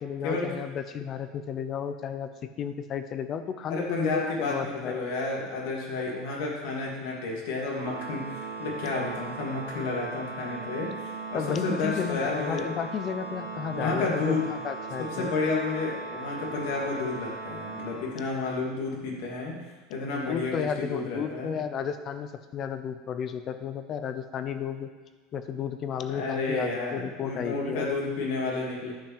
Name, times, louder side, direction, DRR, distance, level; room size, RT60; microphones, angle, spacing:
voice 1, 0.0-5.0 11.3-15.3 20.3-24.9 25.3-27.9, left 7 dB, 30° left, 10 dB, 0.7 m, -33 dB
voice 2, 3.7-12.7 13.7-14.5 15.0-19.6 19.9-21.5 26.1-28.9, left 3 dB, 65° left, -2 dB, 2.8 m, -31 dB
Organ, 7.7-18.6, right 3 dB, 40° right, 2.5 m, -38 dB
10.5 x 5.7 x 7.5 m, 1.3 s
supercardioid pair, 165°, 0 cm